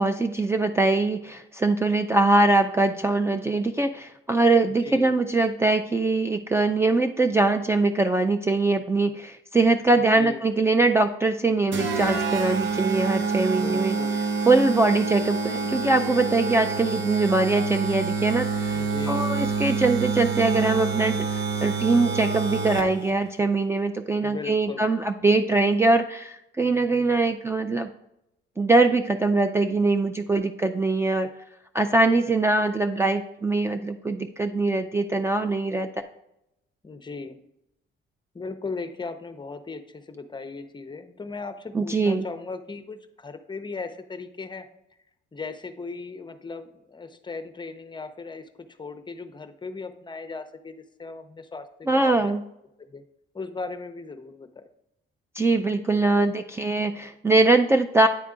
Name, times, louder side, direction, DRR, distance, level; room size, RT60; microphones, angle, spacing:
voice 1, 0.0-14.0 14.5-27.9 28.6-31.3 31.7-35.9 41.7-42.3 51.9-52.4 55.4-58.1, right 3 dB, 15° right, 7 dB, 0.3 m, -22 dB
voice 2, 4.7-5.2 10.0-10.4 13.5-14.2 18.7-19.3 24.2-24.8 36.8-37.4 38.3-44.7 45.3-52.3 52.9-53.0 53.3-54.7, left 4 dB, 25° left, 9 dB, 0.6 m, -37 dB
sound 1, 11.7-23.1, right 5 dB, 70° right, 0.8 m, -27 dB
9.4 x 3.5 x 3.7 m, 0.82 s
cardioid pair, 90°, 20 cm